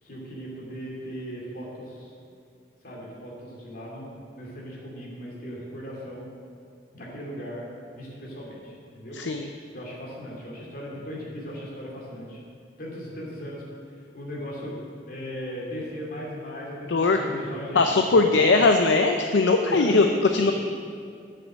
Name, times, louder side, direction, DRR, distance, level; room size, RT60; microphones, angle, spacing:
voice 1, 0.0-2.1 2.8-6.3 6.9-7.7 7.9-9.2 9.7-12.4 12.8-13.6 14.1-14.8 15.1-18.5 19.6-20.5, equal, 55° left, -3 dB, 2.7 m, -37 dB
voice 2, 9.1-9.5 16.9-17.2 17.7-20.1 20.3-20.5, left 3 dB, 70° left, 5 dB, 0.5 m, -20 dB
7.9 x 7.6 x 7.3 m, 2.4 s
head